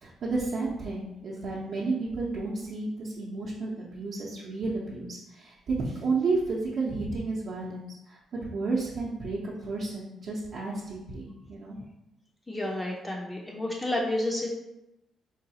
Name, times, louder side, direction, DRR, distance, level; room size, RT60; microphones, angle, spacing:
voice 1, 0.0-11.8, right 3 dB, 65° right, -6 dB, 0.6 m, -32 dB
voice 2, 12.5-14.5, left 1 dB, 15° left, -2 dB, 0.5 m, -30 dB
3.9 x 2.3 x 2.8 m, 0.92 s
cardioid pair, 90°, 0 cm